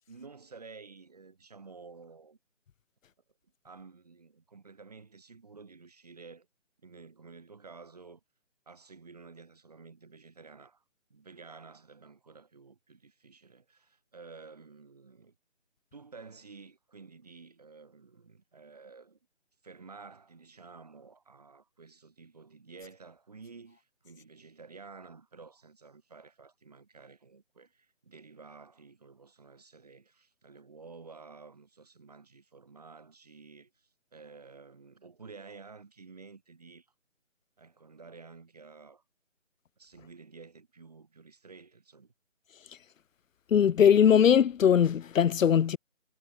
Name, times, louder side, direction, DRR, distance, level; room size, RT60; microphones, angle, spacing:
voice 1, 0.1-2.4 3.6-6.5 6.8-8.2 8.7-10.8 11.1-15.4 15.9-19.2 19.6-36.9 37.6-39.0 39.8-42.1, right 4 dB, 30° right, 4.3 m, -51 dB
voice 2, 43.5-45.8, left 8 dB, 85° left, 0.5 m, -21 dB
figure-of-eight pair, 175°, 38 cm